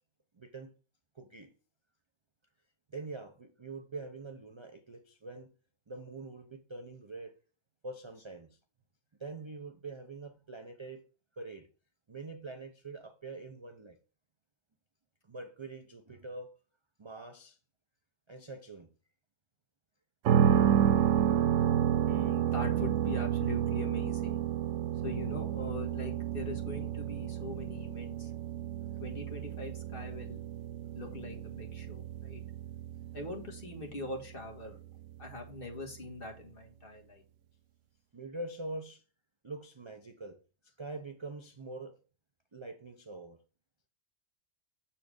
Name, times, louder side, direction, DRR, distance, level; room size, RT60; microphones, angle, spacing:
voice 1, 0.3-0.7 1.1-1.5 2.9-5.5 5.9-7.4 7.8-8.6 9.2-11.0 11.3-11.7 12.1-14.0 15.2-16.6 17.0-17.6 18.3-18.9 32.9-33.0 38.1-39.0 39.4-42.0 42.5-43.4, right 3 dB, 35° right, 0.5 m, -44 dB
sound 1, 20.3-36.1, right 10 dB, 75° right, 0.9 m, -31 dB
voice 2, 22.0-24.4 25.0-28.3 29.0-30.4 30.9-32.4 33.1-34.8 35.2-37.2, left 2 dB, 45° left, 1.9 m, -42 dB
7.0 x 4.3 x 5.0 m
omnidirectional pair, 1.3 m